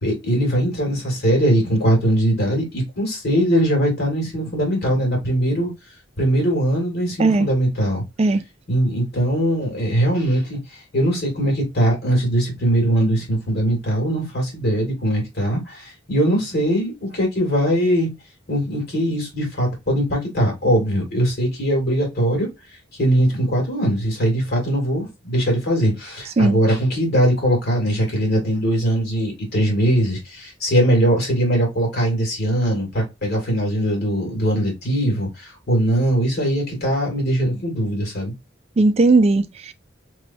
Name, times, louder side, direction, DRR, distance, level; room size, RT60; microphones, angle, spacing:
voice 1, 0.0-5.7 6.2-8.0 8.7-18.1 18.5-22.5 22.9-38.3, right 1 dB, 55° left, 1.9 m, -21 dB
voice 2, 38.8-39.7, right 3 dB, 30° right, 0.3 m, -17 dB
3.3 x 3.0 x 2.6 m
head